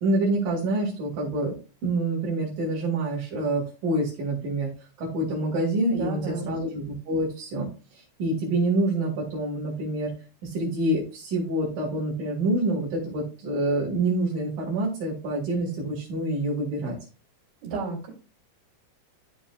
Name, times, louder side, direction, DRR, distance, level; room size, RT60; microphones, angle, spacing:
voice 1, 0.0-1.5 1.8-4.7 5.0-7.7 8.0-10.1 10.4-17.0, right 1 dB, 90° right, -5 dB, 4.3 m, -27 dB
voice 2, 5.9-6.6 17.6-18.1, right 3 dB, 75° right, -1 dB, 4.9 m, -32 dB
14.0 x 4.8 x 2.5 m, 0.34 s
omnidirectional pair, 3.7 m